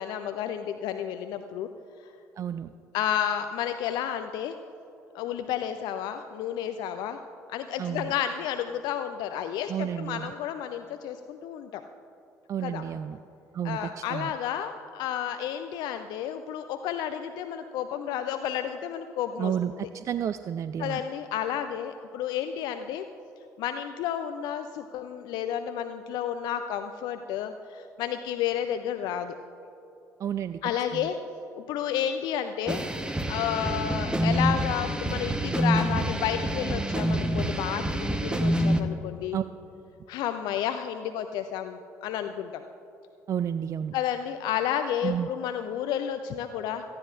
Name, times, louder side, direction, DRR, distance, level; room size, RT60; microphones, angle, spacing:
voice 1, 0.0-1.7 2.9-4.5 5.1-7.2 7.5-11.8 12.6-12.8 13.6-19.5 20.8-23.1 23.6-29.3 30.6-31.2 31.6-32.8 33.3-39.4 40.1-42.6 43.9-46.8, left 9 dB, 55° left, 8 dB, 0.5 m, -31 dB
voice 2, 2.4-2.7 7.8-8.1 9.7-10.3 12.5-13.2 13.5-14.3 19.4-21.0 30.2-31.1 39.3-39.4 43.3-43.9 45.0-45.3, right 9 dB, 40° right, 12 dB, 0.3 m, -31 dB
sound 1, 32.7-38.8, right 1 dB, 10° right, 1.0 m, -27 dB
18.0 x 14.5 x 2.5 m, 2.9 s
figure-of-eight pair, 50°, 9 cm